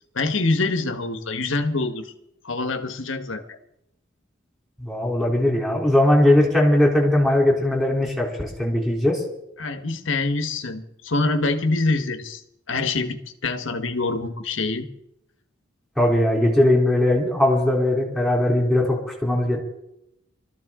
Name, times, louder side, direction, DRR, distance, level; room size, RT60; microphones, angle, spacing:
voice 1, 0.1-2.1 2.4-3.6 9.6-12.4 12.7-14.9, left 3 dB, 70° left, 7 dB, 1.3 m, -25 dB
voice 2, 4.8-9.2 16.0-19.6, left 1 dB, ahead, -2 dB, 3.3 m, -19 dB
24.0 x 13.5 x 3.7 m, 0.81 s
head